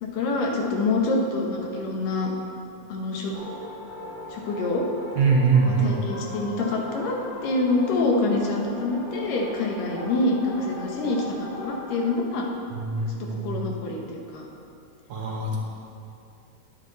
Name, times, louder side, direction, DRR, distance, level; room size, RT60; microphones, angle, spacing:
voice 1, 0.0-2.3 2.9-3.3 4.3-4.8 5.8-7.2 7.4-12.5 13.3-14.5, left 2 dB, 80° left, 0 dB, 2.7 m, -26 dB
sound 1, 3.3-12.1, left 2 dB, 60° left, 3.0 m, -39 dB
voice 2, 5.2-6.1 12.7-13.6 15.1-15.6, right 4 dB, 65° right, -2 dB, 1.9 m, -23 dB
10.5 x 8.8 x 4.0 m, 2.6 s
omnidirectional pair, 3.8 m